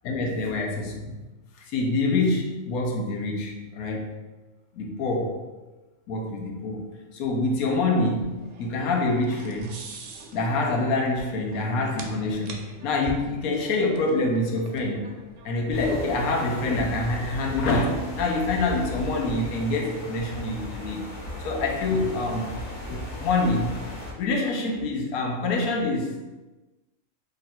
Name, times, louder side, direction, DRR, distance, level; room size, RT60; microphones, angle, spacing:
voice 1, 0.0-1.1 1.6-4.1 4.7-5.4 6.1-9.8 10.3-15.1 15.4-21.1 21.4-22.6 22.9-23.8 24.2-26.2, left 2 dB, 85° left, 2 dB, 1.1 m, -26 dB
sound 1, 7.7-16.3, right 3 dB, 70° right, 0.9 m, -44 dB
sound 2, 15.7-24.1, left 1 dB, 55° left, 1.4 m, -36 dB
3.1 x 2.6 x 4.2 m, 1.1 s
omnidirectional pair, 1.5 m